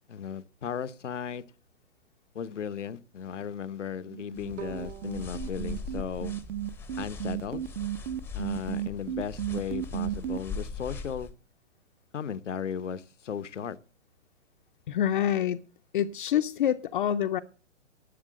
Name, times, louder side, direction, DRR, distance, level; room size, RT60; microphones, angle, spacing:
voice 1, 0.1-1.4 2.3-6.3 7.0-7.6 8.3-11.3 12.1-13.8, left 7 dB, 80° left, 0.9 m, -36 dB
sound 1, 4.1-10.4, right 12 dB, 40° right, 0.7 m, -33 dB
sound 2, 4.4-11.3, left 4 dB, 5° left, 0.7 m, -41 dB
Bowed string instrument, 4.6-7.6, right 10 dB, 70° right, 3.2 m, -47 dB
voice 2, 14.9-15.6 15.9-17.4, left 10 dB, 45° left, 0.6 m, -26 dB
11.5 x 7.4 x 7.5 m
hypercardioid pair, 135°, 36 cm